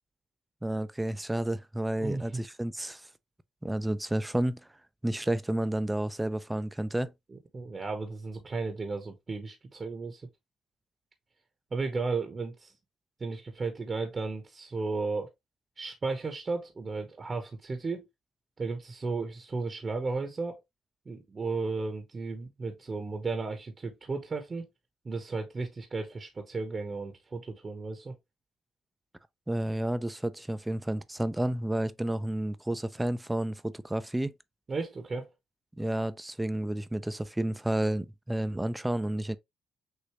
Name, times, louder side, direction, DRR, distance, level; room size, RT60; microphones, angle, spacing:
voice 1, 0.6-3.0 3.6-4.6 5.0-7.1 29.5-34.3 35.8-39.4, right 1 dB, 10° right, 0.5 m, -31 dB
voice 2, 2.0-2.4 7.3-10.3 11.7-12.7 13.2-15.3 15.8-18.1 18.6-20.6 21.1-24.7 25.0-28.1 34.7-35.3, right 3 dB, 35° right, 1.0 m, -34 dB
6.6 x 2.6 x 3.0 m
cardioid pair, 90°, 0 cm